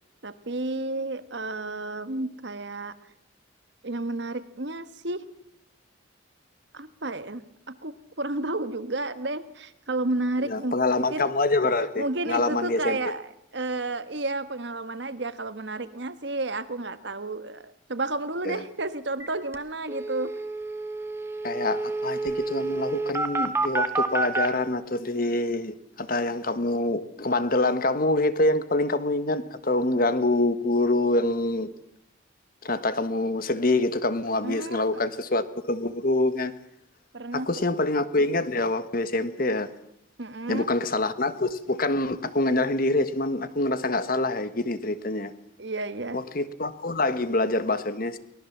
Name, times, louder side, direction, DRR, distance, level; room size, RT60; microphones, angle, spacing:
voice 1, 0.2-2.9 3.8-5.3 6.7-7.4 7.7-10.7 11.1-11.3 12.0-20.3 34.4-34.9 37.1-37.6 40.2-40.7 45.6-46.2, right 2 dB, 60° right, 1.4 m, -31 dB
voice 2, 10.5-13.0 18.5-18.6 21.4-31.7 32.6-36.5 37.3-39.7 40.5-45.3 46.1-48.2, left 2 dB, 45° left, 1.4 m, -25 dB
sound 1, 19.2-19.3 19.5-19.6 19.9-24.5, right 3 dB, 15° right, 1.5 m, -28 dB
23.5 x 18.0 x 7.3 m
head